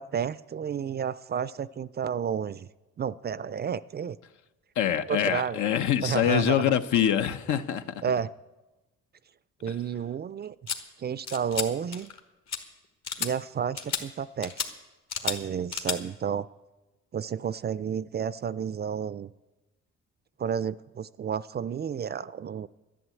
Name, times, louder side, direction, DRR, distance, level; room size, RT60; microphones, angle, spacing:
voice 1, 0.0-2.7 3.0-4.2 5.1-5.6 6.0-6.6 8.0-8.3 9.6-10.6 11.0-12.1 13.2-14.6 15.2-16.5 17.1-19.3 20.4-22.7, right 7 dB, 35° right, 18 dB, 0.4 m, -31 dB
voice 2, 4.8-8.0, left 10 dB, 75° left, 9 dB, 0.8 m, -25 dB
sound 1, 10.7-10.8 11.3-11.7 11.9-12.2 12.5-12.6 13.0-13.3 13.8-14.0 14.4-14.7 15.1-15.4 15.7-16.0, left 6 dB, 60° left, 1.6 m, -31 dB
11.0 x 11.0 x 8.3 m, 1.1 s
cardioid pair, 90°, 30 cm